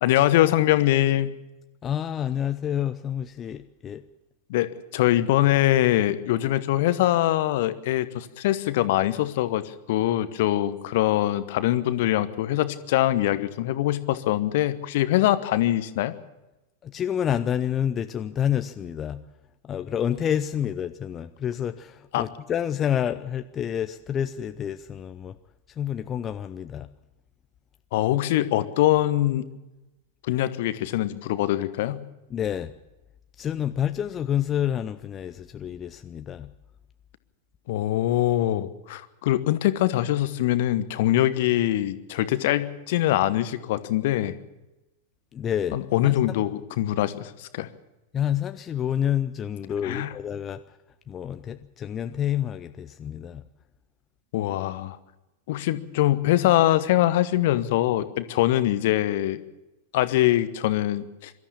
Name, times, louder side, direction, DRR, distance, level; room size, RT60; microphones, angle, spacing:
voice 1, 0.0-1.3 4.5-16.1 22.1-22.2 27.9-29.5 30.2-32.0 37.7-44.4 45.7-47.7 49.8-50.1 54.3-55.0 55.5-59.4 59.9-61.3, left 14 dB, 50° left, 1.1 m, -23 dB
voice 2, 1.8-4.0 16.8-19.2 19.6-25.4 25.7-26.9 32.3-32.7 33.4-36.5 45.3-46.4 48.1-50.8 51.1-53.4, left 9 dB, 25° left, 0.6 m, -28 dB
23.0 x 13.0 x 8.5 m
figure-of-eight pair, 90°, 0 cm